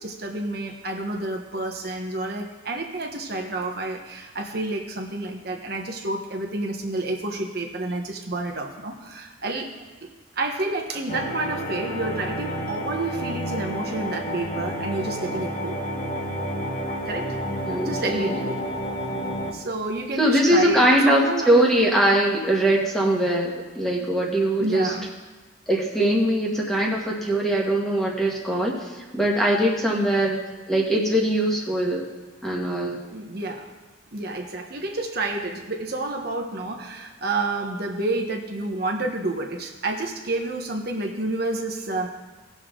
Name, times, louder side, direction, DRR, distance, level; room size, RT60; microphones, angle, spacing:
voice 1, 0.0-9.7 10.0-10.1 10.4-15.8 17.0-17.4 17.8-18.6 19.5-21.6 24.6-25.1 33.1-33.7 34.1-42.1, right 2 dB, 50° right, 1 dB, 1.1 m, -29 dB
sound 1, 11.1-19.5, equal, 35° left, 1.3 m, -30 dB
voice 2, 17.7-18.4 20.2-24.9 25.7-30.4 30.7-32.0 32.4-33.0, right 1 dB, ahead, -2 dB, 1.5 m, -21 dB
18.0 x 6.5 x 3.8 m, 1.3 s
head